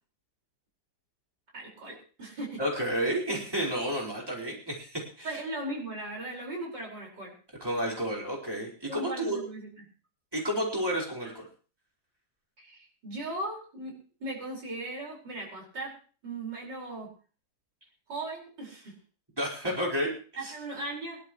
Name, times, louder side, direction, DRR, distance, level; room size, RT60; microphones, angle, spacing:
voice 1, 1.5-2.6 5.2-7.3 8.9-9.7 12.6-14.0 14.2-16.0 16.2-17.1 18.1-18.9 20.4-21.2, right 2 dB, 85° right, -2 dB, 5.8 m, -38 dB
voice 2, 2.6-5.4 7.6-9.4 10.3-11.5 19.4-20.1 20.4-20.5, equal, 15° right, -2 dB, 4.5 m, -31 dB
23.5 x 12.0 x 3.1 m, 0.38 s
omnidirectional pair, 1.9 m